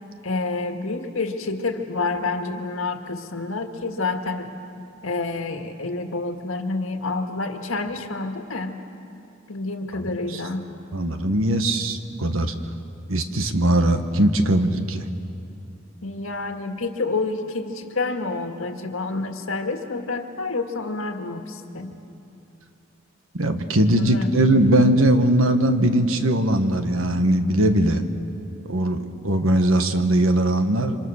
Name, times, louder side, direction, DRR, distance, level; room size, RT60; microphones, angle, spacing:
voice 1, 0.2-4.5 5.0-8.7 9.5-10.7 16.0-21.9 24.0-24.3, left 3 dB, 90° left, 5 dB, 1.8 m, -28 dB
voice 2, 10.9-12.5 13.1-15.0 23.3-28.0 28.6-31.0, right 1 dB, 90° right, 8 dB, 1.4 m, -20 dB
27.5 x 25.5 x 6.5 m, 2.7 s
head